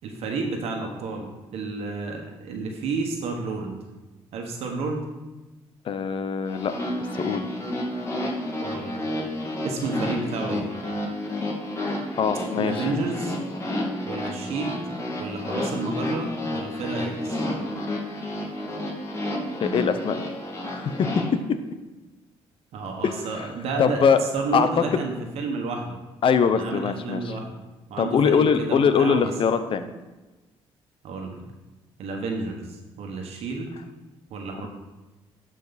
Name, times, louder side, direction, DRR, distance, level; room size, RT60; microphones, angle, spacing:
voice 1, 0.0-3.8 4.3-5.0 8.6-9.0 9.6-10.7 12.6-13.3 14.0-14.9 15.2-17.4 22.7-24.0 24.3-26.0 26.5-27.5 27.9-29.3 31.0-31.4 32.0-33.8 34.3-34.7, right 3 dB, 75° right, 2 dB, 1.4 m, -31 dB
voice 2, 5.8-6.7 7.1-7.4 12.2-12.9 19.6-20.2 20.6-21.1 23.0-23.5 23.8-24.2 24.5-24.8 26.2-27.4 28.0-29.9, left 6 dB, 55° left, 10 dB, 0.8 m, -22 dB
sound 1, 6.5-21.2, left 1 dB, 30° left, 2.3 m, -30 dB
11.5 x 5.1 x 4.1 m, 1.1 s
cardioid pair, 85°, 11 cm